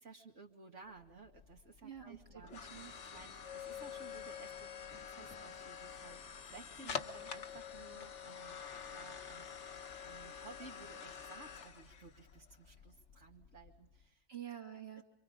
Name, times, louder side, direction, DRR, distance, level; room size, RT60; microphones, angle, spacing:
voice 1, 0.0-2.6 3.1-9.6 10.0-14.3, right 3 dB, 75° right, 2 dB, 2.5 m, -56 dB
sound 1, 1.0-14.0, left 7 dB, 70° left, 1.4 m, -48 dB
Rain, 1.3-8.6, equal, 10° right, 1.4 m, -67 dB
voice 2, 1.8-2.9 6.8-7.3 14.3-15.0, right 10 dB, 55° right, -2 dB, 2.7 m, -49 dB
27.0 x 25.0 x 5.1 m, 0.78 s
omnidirectional pair, 1.3 m